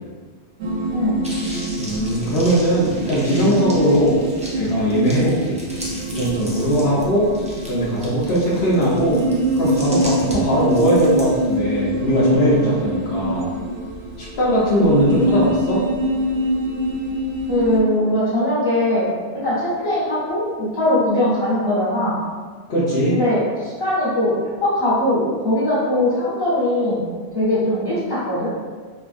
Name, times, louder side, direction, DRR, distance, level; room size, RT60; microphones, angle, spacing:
sound 1, 0.6-17.8, equal, 70° right, 0.8 m, -25 dB
voice 1, 0.9-1.2 14.8-15.0 17.5-19.1 19.3-22.1 23.1-24.3 24.6-27.0 27.3-28.5, left 1 dB, 20° left, -13 dB, 1.3 m, -20 dB
sound 2, 1.2-11.6, equal, 10° right, 0.4 m, -37 dB
voice 2, 1.8-4.2 4.5-5.6 6.1-7.3 7.7-9.2 9.5-13.5 14.2-15.8 22.7-23.1, equal, 60° left, -8 dB, 1.0 m, -19 dB
4.7 x 2.3 x 2.5 m, 1.5 s
omnidirectional pair, 1.2 m